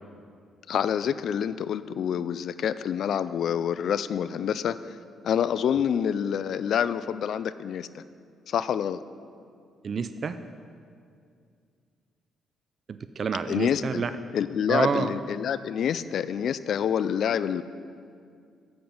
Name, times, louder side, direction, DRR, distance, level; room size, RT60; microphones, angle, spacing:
voice 1, 0.7-5.0 5.2-8.0 8.5-9.0 13.5-14.0 14.3-17.6, left 8 dB, 65° left, 15 dB, 0.3 m, -27 dB
voice 2, 9.8-10.3 12.9-14.1 14.7-15.1, right 5 dB, 45° right, 11 dB, 0.4 m, -28 dB
8.7 x 7.8 x 5.4 m, 2.3 s
cardioid pair, 90°, 0 cm